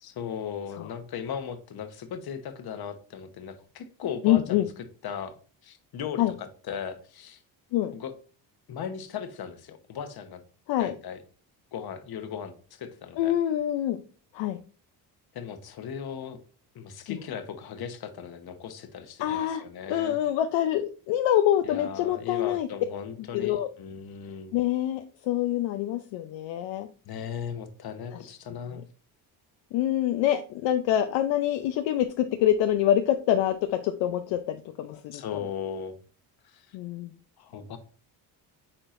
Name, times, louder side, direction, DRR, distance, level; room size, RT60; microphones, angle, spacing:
voice 1, 0.0-4.7 5.0-5.3 5.6-7.4 7.9-8.1 8.7-10.4 10.8-11.2 11.7-13.3 15.3-16.4 16.7-20.2 21.6-24.5 27.1-28.8 35.1-35.9 36.4-36.8 37.4-37.8, left 7 dB, 55° left, 9 dB, 1.2 m, -37 dB
voice 2, 4.2-4.7 6.2-6.3 7.7-7.9 10.7-10.9 13.2-14.0 14.3-14.6 17.1-17.2 19.2-22.7 23.3-23.7 24.5-26.9 28.1-28.3 28.7-28.8 29.7-35.5 36.7-37.2, left 11 dB, 75° left, 7 dB, 0.7 m, -26 dB
8.7 x 4.4 x 2.6 m, 0.40 s
supercardioid pair, 85°, 45 cm